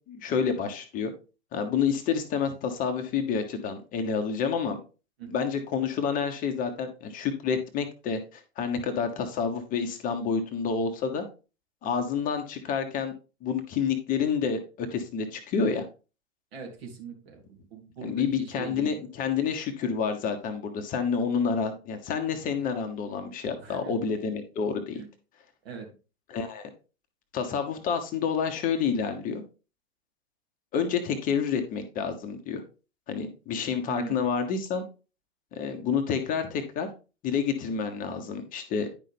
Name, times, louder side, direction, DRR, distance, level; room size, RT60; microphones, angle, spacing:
voice 1, 0.1-1.1 1.5-4.8 5.3-11.2 11.8-13.1 13.4-15.8 18.0-25.0 26.3-26.7 27.3-29.4 30.7-32.6 33.1-34.8 35.5-36.9 37.2-38.9, left 6 dB, 25° left, 6 dB, 0.9 m, -29 dB
voice 2, 16.5-18.9 23.6-23.9 24.9-25.1 25.6-25.9 33.9-34.2, right 7 dB, 60° right, 2 dB, 2.9 m, -41 dB
9.9 x 5.5 x 3.5 m, 0.33 s
figure-of-eight pair, 105°, 35 cm